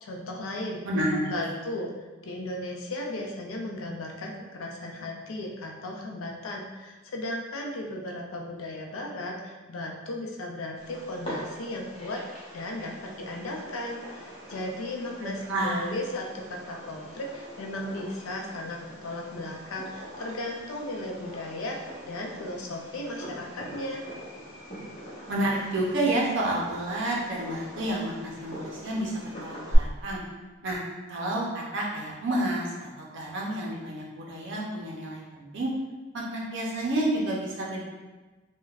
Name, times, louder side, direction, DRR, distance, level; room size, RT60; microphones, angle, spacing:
voice 1, 0.0-0.8 1.3-12.2 12.5-21.8 22.0-24.1, left 1 dB, 85° left, 0 dB, 0.5 m, -36 dB
voice 2, 0.8-1.5 15.2-15.8 25.3-30.2 30.6-30.8 31.1-35.7 36.1-37.8, right 1 dB, 60° right, -3 dB, 0.5 m, -30 dB
Fireworks, 10.8-29.8, equal, 30° left, 0.9 m, -41 dB
3.3 x 2.1 x 2.3 m, 1.2 s
head